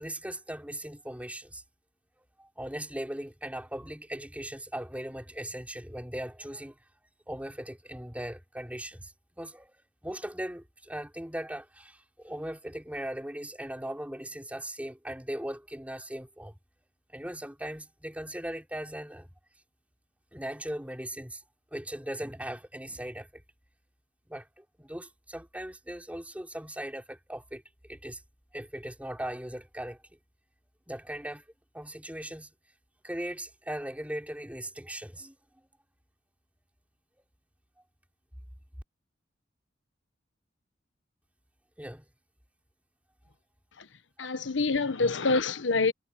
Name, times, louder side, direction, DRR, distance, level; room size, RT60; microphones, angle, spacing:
voice 1, 0.0-1.6 2.4-6.8 7.3-9.7 10.0-16.5 17.1-19.3 20.3-21.4 21.7-23.4 24.3-27.6 27.9-28.2 28.5-30.0 30.9-31.5 31.7-32.5 33.0-35.4 41.8-42.0 44.7-44.8, right 1 dB, 10° right, 4.1 m, -39 dB
voice 2, 44.2-45.9, left 3 dB, 80° left, 1.1 m, -26 dB
head